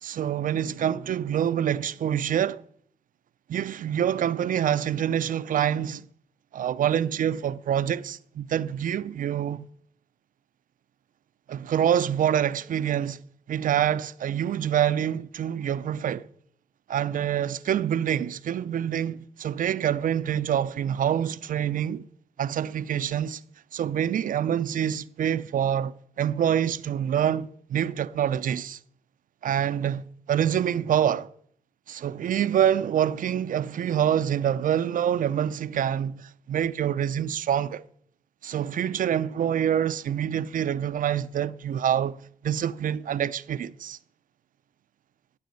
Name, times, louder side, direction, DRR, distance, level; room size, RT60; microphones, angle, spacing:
voice 1, 0.0-2.6 3.5-6.1 6.5-9.7 11.5-13.2 13.5-16.3 16.9-22.1 22.4-23.4 23.7-28.8 29.4-31.3 31.9-37.8 38.4-44.0, right 9 dB, 75° right, 0.5 m, -26 dB
13.0 x 9.0 x 6.5 m
supercardioid pair, 40°, 14 cm